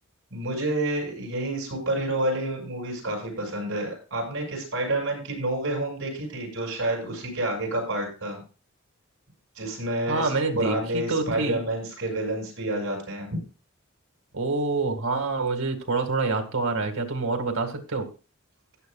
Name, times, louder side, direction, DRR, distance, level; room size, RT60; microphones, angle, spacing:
voice 1, 0.3-8.4 9.6-13.3, right 1 dB, 65° right, 1 dB, 6.3 m, -29 dB
voice 2, 10.1-11.6 14.3-18.1, right 3 dB, 80° right, 5 dB, 2.2 m, -27 dB
15.0 x 10.0 x 2.4 m, 0.35 s
head